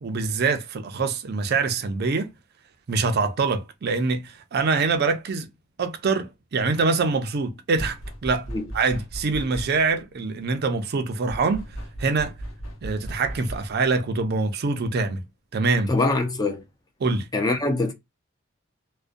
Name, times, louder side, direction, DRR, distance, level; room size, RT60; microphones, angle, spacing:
voice 1, 0.0-2.3 2.9-5.5 5.8-8.5 8.7-11.7 12.0-12.3 12.8-15.2 15.5-15.9 17.0-17.3, right 4 dB, 50° right, 0.4 m, -24 dB
sound 1, 7.8-10.0 11.3-13.9, right 1 dB, 90° left, 0.8 m, -36 dB
voice 2, 15.9-16.6 17.3-17.9, left 2 dB, 20° left, 0.4 m, -23 dB
2.4 x 2.1 x 2.4 m
head